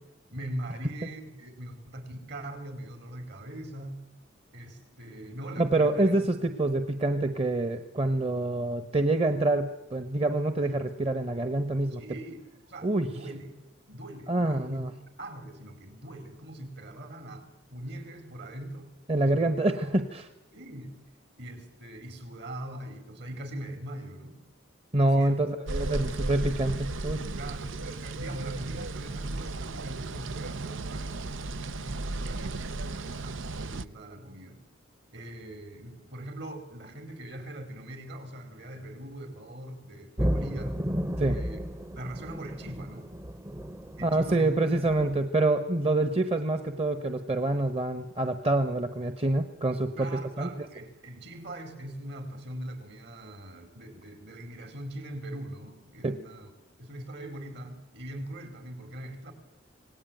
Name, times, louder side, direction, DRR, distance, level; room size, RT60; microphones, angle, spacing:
voice 1, 0.3-4.0 4.5-6.3 11.9-13.5 13.9-14.8 15.2-18.9 19.2-19.6 20.5-21.0 21.4-24.4 25.0-25.4 27.3-34.6 35.1-40.8 41.2-41.7 41.9-43.1 44.0-44.5 50.0-56.5 56.8-59.3, right 1 dB, 60° right, 8 dB, 4.5 m, -41 dB
voice 2, 5.6-12.0 12.8-13.1 14.3-14.9 19.1-20.3 24.9-27.3 41.2-41.4 44.0-50.5 56.0-56.2, right 2 dB, 30° right, 9 dB, 1.2 m, -26 dB
sound 1, 25.7-33.9, right 2 dB, 90° right, 0.8 m, -35 dB
sound 2, 40.2-45.2, equal, 15° right, 0.8 m, -33 dB
26.5 x 18.5 x 9.2 m, 1.0 s
head